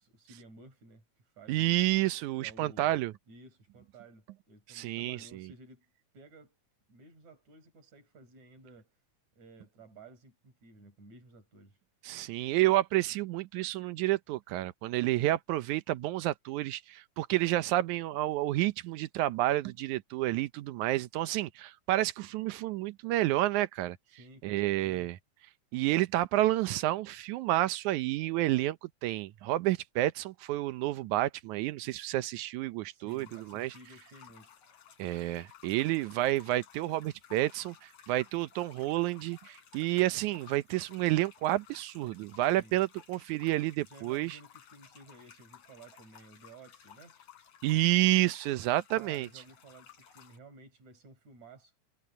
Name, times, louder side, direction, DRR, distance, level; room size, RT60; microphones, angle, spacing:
voice 1, 0.0-1.9 2.4-3.0 3.3-5.8 6.1-6.6 6.9-8.9 9.3-11.8 24.1-25.1 32.9-34.5 42.3-42.8 43.8-47.2 48.9-51.7, right 3 dB, 70° right, 6.7 m, -54 dB
voice 2, 1.5-3.1 4.7-5.5 12.0-24.0 24.4-25.2 25.7-33.7 35.0-44.4 47.6-49.3, right 16 dB, 85° right, 2.2 m, -30 dB
sound 1, 33.1-50.4, left 9 dB, 70° left, 4.3 m, -57 dB
omnidirectional pair, 3.3 m